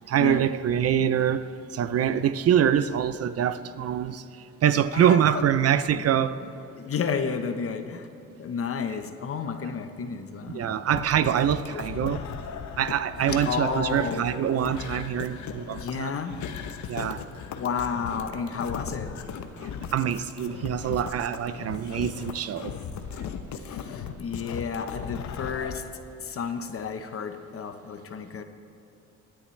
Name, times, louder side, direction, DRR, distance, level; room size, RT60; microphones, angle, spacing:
voice 1, 0.1-4.2 4.6-6.4 10.5-12.2 12.8-16.1 16.9-17.3 19.9-22.8, right 9 dB, 55° right, 0.5 m, -24 dB
voice 2, 4.9-5.5 5.9-6.0 6.7-8.1 8.4-10.8 13.4-14.3 15.8-16.4 17.6-19.1 23.6-25.8 26.2-28.4, left 6 dB, 50° left, 1.0 m, -31 dB
sound 1, 10.9-25.8, left 7 dB, 70° left, 0.9 m, -37 dB
20.5 x 9.8 x 3.2 m
cardioid pair, 90°, 30 cm